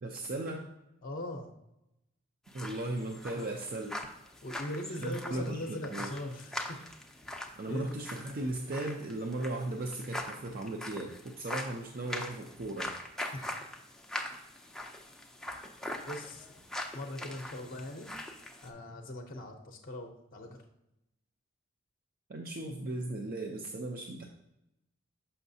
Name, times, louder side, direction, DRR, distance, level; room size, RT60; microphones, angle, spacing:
voice 1, 0.0-0.7 2.5-4.0 5.0-6.1 7.6-11.1 11.4-12.9 22.3-24.3, right 2 dB, 45° right, 2 dB, 0.5 m, -37 dB
voice 2, 1.0-1.5 3.3-3.5 4.4-6.8 7.7-7.8 13.3-13.5 16.1-16.5 16.9-18.1 18.6-20.6, left 1 dB, 45° left, 4 dB, 0.6 m, -40 dB
sound 1, 2.5-18.7, left 1 dB, 5° left, 0.5 m, -42 dB
6.3 x 5.7 x 2.7 m, 0.88 s
head